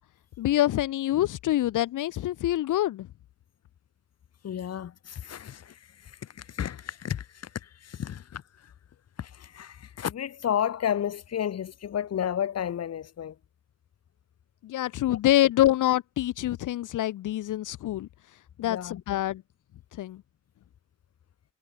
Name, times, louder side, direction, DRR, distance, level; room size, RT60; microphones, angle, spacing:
voice 1, 0.4-3.1 14.6-18.1 18.6-19.4 19.9-20.2, left 14 dB, 80° left, 0.6 m, -26 dB
voice 2, 4.4-8.7 9.2-13.4 18.6-19.0, left 9 dB, 55° left, 0.9 m, -32 dB
cardioid pair, 105°, 31 cm